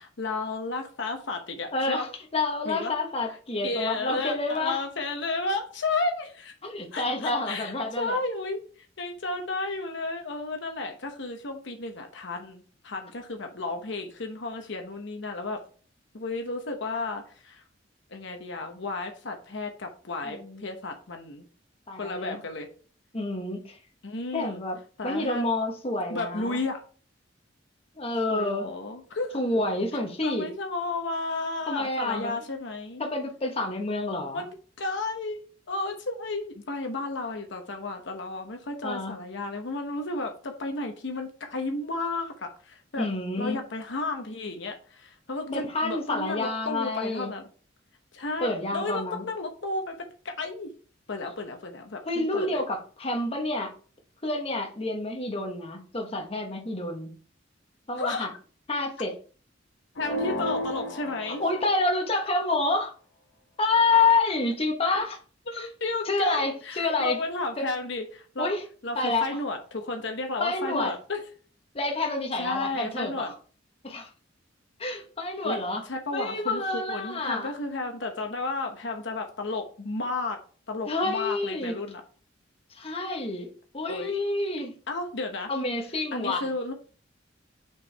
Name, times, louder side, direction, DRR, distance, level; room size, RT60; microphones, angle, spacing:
voice 1, 0.0-2.0 2.6-2.9 3.6-6.5 6.9-15.6 16.1-17.6 18.1-21.4 21.9-22.7 24.0-24.6 25.0-25.4 26.1-26.8 28.3-29.4 30.2-33.0 34.3-35.4 35.7-43.1 43.4-47.4 48.1-50.7 51.1-52.6 58.0-58.3 60.0-61.4 65.5-68.5 68.8-71.2 71.8-71.9 72.4-73.3 75.4-75.6 75.9-80.4 80.7-82.0 83.9-84.1 84.9-85.5 86.1-86.7, left 3 dB, 70° left, 0.9 m, -33 dB
voice 2, 1.7-4.8 6.6-8.2 20.2-20.7 21.9-22.4 23.1-23.8 24.3-26.6 28.0-28.7 29.3-30.5 31.7-32.4 33.0-34.4 38.8-39.2 43.0-43.6 45.5-47.3 48.4-49.2 52.0-53.7 54.2-57.1 57.9-58.3 58.7-59.2 61.4-62.9 63.6-65.2 65.5-65.7 66.0-67.2 67.6-67.7 68.4-68.6 68.9-69.3 70.4-70.9 71.7-73.3 73.8-74.1 74.8-75.8 76.1-77.5 80.9-81.8 82.7-84.7 85.5-86.5, left 2 dB, 30° left, 1.2 m, -28 dB
sound 1, 60.0-62.0, left 1 dB, 90° left, 1.3 m, -33 dB
6.3 x 4.6 x 3.4 m
head